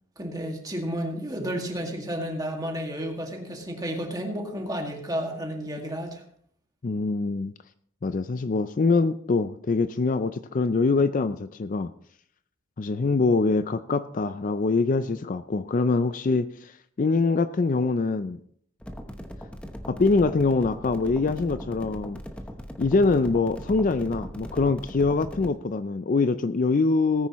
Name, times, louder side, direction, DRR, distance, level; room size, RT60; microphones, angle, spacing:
voice 1, 0.2-6.2, equal, 20° right, 1 dB, 2.0 m, -32 dB
voice 2, 6.8-7.5 8.0-11.9 12.8-16.7 17.0-18.4 19.9-22.2 22.8-27.3, left 3 dB, 40° left, 12 dB, 0.4 m, -24 dB
sound 1, 18.8-25.5, equal, 5° left, 0.9 m, -39 dB
18.5 x 9.7 x 3.1 m, 0.64 s
head